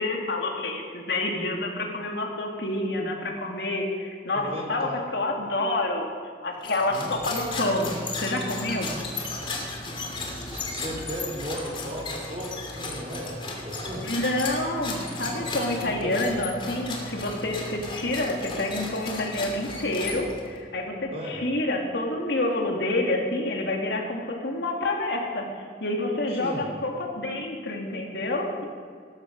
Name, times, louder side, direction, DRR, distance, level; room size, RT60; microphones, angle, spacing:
voice 1, 0.0-6.1 6.4-7.9 8.2-8.9 14.0-28.6, left 2 dB, 70° left, 1 dB, 2.4 m, -28 dB
voice 2, 4.3-5.0 6.9-7.1 10.2-14.0 15.2-15.5 15.8-16.2 21.1-21.4 26.4-26.6, right 1 dB, 35° right, -2 dB, 3.6 m, -36 dB
sound 1, 6.6-20.6, left 2 dB, 30° left, 2.6 m, -35 dB
18.5 x 13.5 x 5.3 m, 2.1 s
head